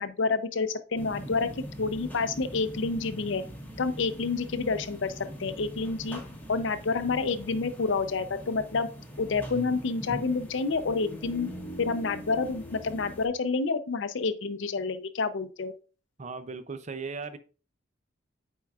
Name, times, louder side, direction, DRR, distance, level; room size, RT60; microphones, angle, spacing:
voice 1, 0.0-1.5 1.8-3.4 3.8-6.2 6.5-8.9 9.2-11.5 11.8-15.7, left 4 dB, 65° left, 12 dB, 0.5 m, -29 dB
sound 1, 1.0-13.3, equal, 10° left, 1.0 m, -42 dB
voice 2, 16.2-17.4, right 4 dB, 35° right, 11 dB, 0.5 m, -37 dB
8.5 x 4.6 x 2.4 m, 0.36 s
head